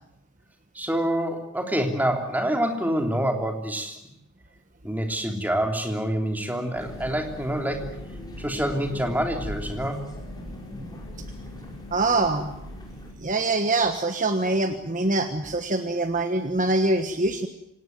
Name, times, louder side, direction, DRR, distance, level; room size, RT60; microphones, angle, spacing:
voice 1, 0.7-4.0 4.8-8.0 8.4-10.0, right 1 dB, 10° right, 3 dB, 3.2 m, -26 dB
sound 1, 6.7-13.1, left 1 dB, 20° left, 5.6 m, -39 dB
voice 2, 11.9-12.5 13.2-17.5, right 2 dB, 35° right, 7 dB, 1.4 m, -24 dB
25.5 x 18.5 x 9.3 m, 0.84 s
head